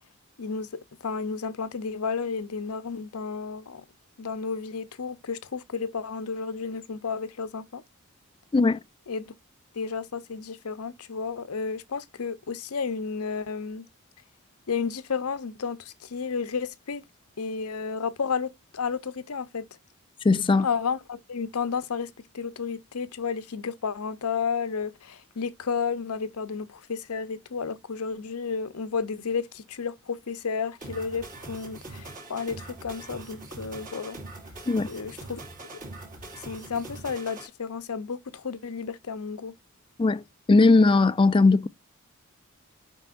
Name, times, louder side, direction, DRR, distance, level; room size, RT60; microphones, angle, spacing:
voice 1, 0.4-3.8 4.2-7.8 9.1-9.3 9.7-13.9 14.7-17.0 17.4-19.7 20.6-34.2 34.8-35.4 36.4-39.5, left 5 dB, 90° left, 0.7 m, -32 dB
voice 2, 20.2-20.7 34.7-34.9 40.0-40.2 40.5-41.7, left 3 dB, 25° left, 0.3 m, -19 dB
sound 1, 30.8-37.5, right 2 dB, 40° right, 2.9 m, -42 dB
7.6 x 5.4 x 2.5 m
head